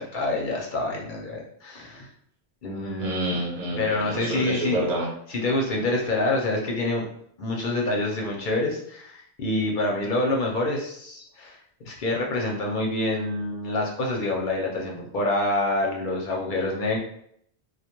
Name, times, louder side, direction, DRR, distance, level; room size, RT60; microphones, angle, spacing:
voice 1, 0.0-2.1 2.6-3.4 3.8-4.9 5.3-7.1 7.4-11.6 11.9-17.0, left 2 dB, 55° left, -1 dB, 0.6 m, -27 dB
voice 2, 3.0-5.1, right 1 dB, 45° right, -3 dB, 0.8 m, -28 dB
2.2 x 2.2 x 2.8 m, 0.68 s
omnidirectional pair, 1.1 m